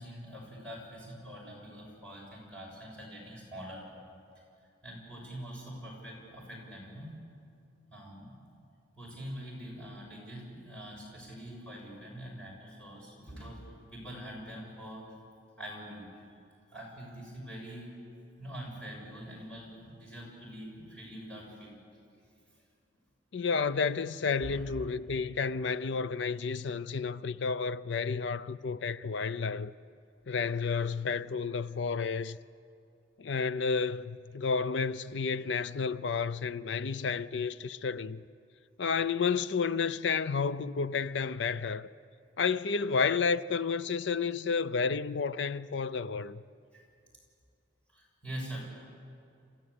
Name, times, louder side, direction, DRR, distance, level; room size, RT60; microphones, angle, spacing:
voice 1, 0.0-3.9 4.8-7.2 7.9-8.5 9.0-13.6 13.9-15.0 15.6-16.1 16.7-18.0 18.4-21.8 24.4-24.6 46.7-46.8 47.9-48.6, equal, 5° left, 6.6 m, -44 dB
voice 2, 23.3-29.7 30.3-32.4 33.2-38.2 38.8-41.9 42.4-46.4, left 5 dB, 70° left, 0.5 m, -31 dB
28.0 x 15.0 x 8.3 m
head